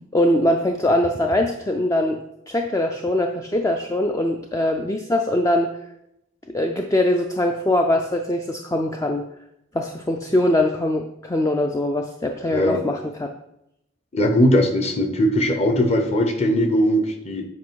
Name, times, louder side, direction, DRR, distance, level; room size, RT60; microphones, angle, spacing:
voice 1, 0.1-2.2 2.5-5.7 6.5-9.2 9.7-13.3, left 1 dB, 15° left, 3 dB, 0.3 m, -22 dB
voice 2, 12.5-12.8 14.1-17.5, equal, 30° left, 5 dB, 0.8 m, -19 dB
8.4 x 5.0 x 4.6 m, 0.84 s
head